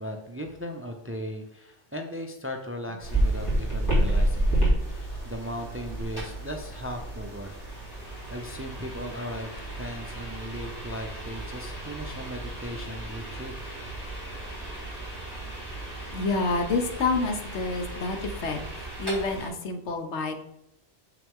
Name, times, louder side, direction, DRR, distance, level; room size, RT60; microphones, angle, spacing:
voice 1, 0.0-7.5 8.3-13.5, equal, 15° right, 4 dB, 0.5 m, -37 dB
sound 1, 3.0-19.5, right 1 dB, 20° left, 3.3 m, -31 dB
voice 2, 16.1-18.6 19.0-20.4, left 3 dB, 80° left, 6 dB, 1.2 m, -28 dB
7.2 x 5.8 x 3.6 m, 0.80 s
omnidirectional pair, 1.1 m